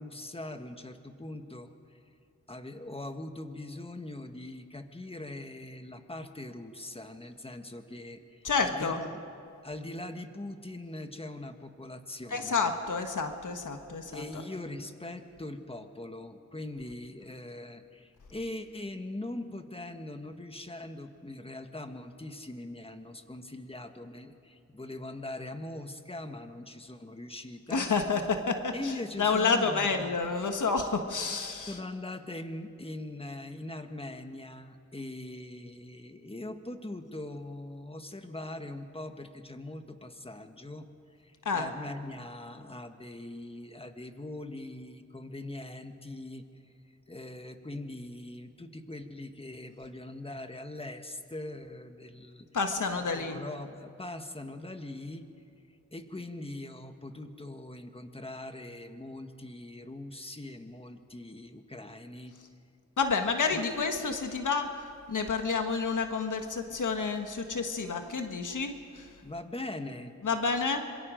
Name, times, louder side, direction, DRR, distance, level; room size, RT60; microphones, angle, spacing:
voice 1, 0.0-2.0 2.5-9.2 9.6-12.7 14.1-27.9 28.7-30.1 31.7-40.9 41.2-46.4 47.1-52.5 53.0-55.3 55.9-62.3 63.5-63.6 69.2-70.1, left 1 dB, 20° left, 7 dB, 1.5 m, -41 dB
voice 2, 8.4-9.0 12.3-14.2 27.7-31.8 41.4-41.7 52.5-53.4 63.0-69.1 70.2-70.8, left 4 dB, 80° left, 5 dB, 1.6 m, -29 dB
26.0 x 22.5 x 5.2 m, 2.5 s
wide cardioid pair, 75°, 30 cm